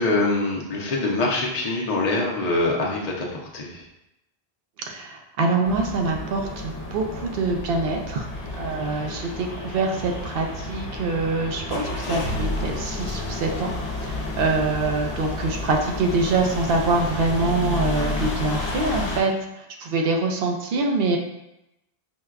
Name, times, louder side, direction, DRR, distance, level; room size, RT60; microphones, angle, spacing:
voice 1, 0.0-3.8 14.5-14.6, left 2 dB, 45° left, -3 dB, 0.7 m, -24 dB
voice 2, 4.9-8.3 8.5-13.7 14.0-21.2, right 3 dB, 70° right, 2 dB, 0.7 m, -25 dB
sound 1, 5.6-19.2, left 2 dB, 90° left, 0.9 m, -31 dB
4.5 x 2.2 x 2.3 m, 0.87 s
omnidirectional pair, 1.0 m